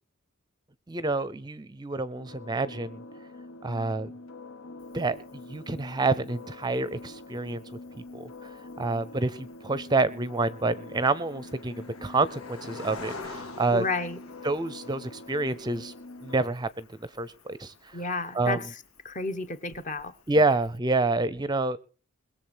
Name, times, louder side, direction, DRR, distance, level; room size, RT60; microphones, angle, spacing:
voice 1, 0.9-3.0 3.6-4.1 4.9-5.2 5.5-7.6 7.9-8.5 8.8-13.8 14.4-15.9 16.2-18.0 18.3-18.6 20.3-21.8, right 3 dB, 20° right, 0.6 m, -28 dB
sound 1, 2.1-16.5, left 2 dB, 70° left, 1.1 m, -45 dB
Cricket, 4.8-20.8, left 3 dB, 90° left, 3.3 m, -49 dB
voice 2, 13.7-14.2 17.9-18.6 19.0-20.1, left 3 dB, 35° left, 1.4 m, -31 dB
21.5 x 7.4 x 6.2 m
head